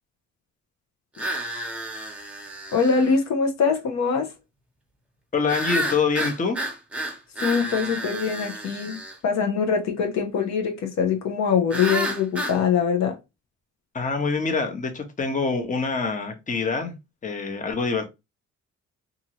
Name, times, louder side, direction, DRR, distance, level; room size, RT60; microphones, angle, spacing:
sound 1, 1.2-3.1 5.5-9.2 11.7-12.6, right 1 dB, 5° right, 0.9 m, -30 dB
voice 1, 2.7-4.3 7.4-13.2, left 6 dB, 65° left, 0.7 m, -23 dB
voice 2, 5.3-6.6 13.9-16.9 17.2-18.1, left 4 dB, 25° left, 0.8 m, -25 dB
2.6 x 2.5 x 2.9 m
cardioid pair, 90°, 30 cm